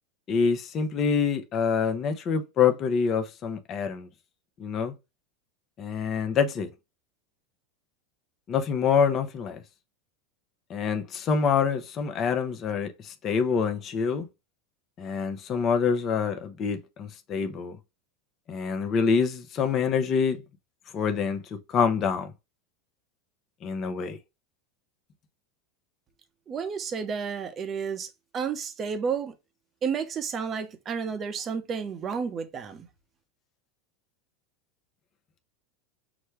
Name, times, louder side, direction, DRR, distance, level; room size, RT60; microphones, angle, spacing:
voice 1, 0.3-4.1 4.6-4.9 5.8-6.7 8.5-9.6 10.7-14.3 15.0-17.8 18.5-20.4 20.9-21.4 21.7-22.3 23.6-24.2, left 6 dB, 35° left, 0.8 m, -26 dB
voice 2, 26.5-29.3 29.8-32.9, right 6 dB, 30° right, 0.8 m, -31 dB
6.0 x 2.2 x 3.1 m
supercardioid pair, 110°, 0 cm